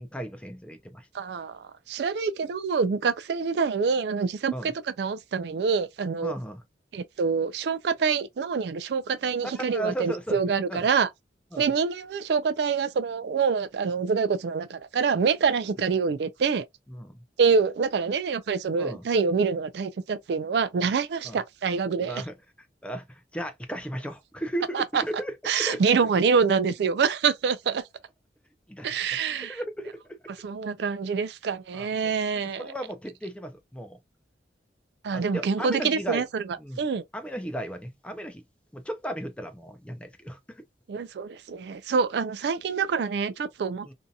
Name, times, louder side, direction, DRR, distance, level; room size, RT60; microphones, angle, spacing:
voice 1, 0.0-1.1 4.5-4.7 6.2-6.6 9.5-10.8 11.5-11.7 16.9-17.2 18.7-19.0 21.2-21.4 22.0-22.3 22.8-25.8 28.7-28.9 29.4-30.2 31.7-32.1 32.6-34.0 35.1-36.2 36.6-36.8 37.1-38.4 38.7-40.6 43.9-44.0, right 1 dB, 5° left, 0.4 m, -35 dB
voice 2, 1.1-6.3 6.9-11.1 11.6-16.6 17.4-22.2 24.7-25.0 25.5-27.8 28.8-29.6 30.4-32.7 35.0-36.4 36.8-37.0 40.9-43.9, right 5 dB, 70° right, 0.3 m, -26 dB
2.7 x 2.6 x 2.3 m
head